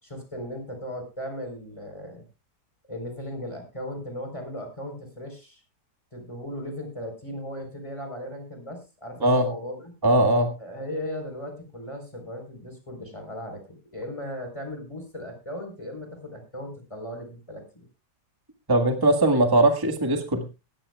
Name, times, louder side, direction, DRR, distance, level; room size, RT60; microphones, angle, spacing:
voice 1, 0.0-2.3 2.9-5.6 6.1-9.9 10.6-17.8, equal, 15° left, 4 dB, 4.3 m, -37 dB
voice 2, 10.0-10.5 18.7-20.6, right 1 dB, 15° right, 5 dB, 1.5 m, -20 dB
19.0 x 14.0 x 2.3 m, 0.28 s
omnidirectional pair, 1.9 m